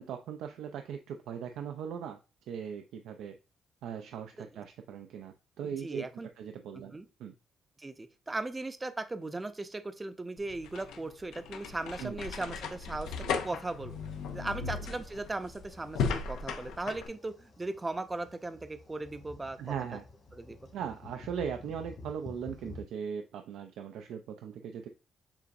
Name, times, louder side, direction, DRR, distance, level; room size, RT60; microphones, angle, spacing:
voice 1, 0.0-2.2 2.5-3.3 3.8-6.1 6.4-7.3 12.0-12.1 14.6-14.7 19.6-20.0 20.7-24.9, right 7 dB, 85° right, 5 dB, 0.4 m, -39 dB
voice 2, 5.6-6.3 6.7-7.0 7.8-14.0 14.3-19.7 20.3-20.6, right 2 dB, 20° right, 9 dB, 0.5 m, -38 dB
sound 1, 10.4-17.1, left 5 dB, 85° left, 0.5 m, -36 dB
sound 2, 12.9-22.8, left 2 dB, 50° left, 1.7 m, -52 dB
6.9 x 2.5 x 2.5 m, 0.31 s
cardioid pair, 90°, 0 cm